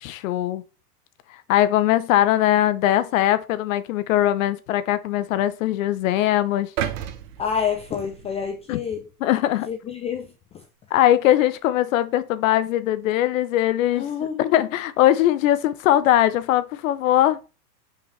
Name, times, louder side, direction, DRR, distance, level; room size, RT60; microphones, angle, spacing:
voice 1, 0.0-0.6 1.5-6.7 8.7-8.8 9.2-9.7 10.9-14.1 14.4-17.4, left 13 dB, 55° left, 0.9 m, -20 dB
sound 1, 6.8-8.9 9.4-9.6, right 10 dB, 50° right, 1.3 m, -33 dB
voice 2, 7.4-9.1 9.7-10.6 13.9-14.6, left 7 dB, 15° left, 0.5 m, -28 dB
7.2 x 5.8 x 3.3 m
hypercardioid pair, 125°, 49 cm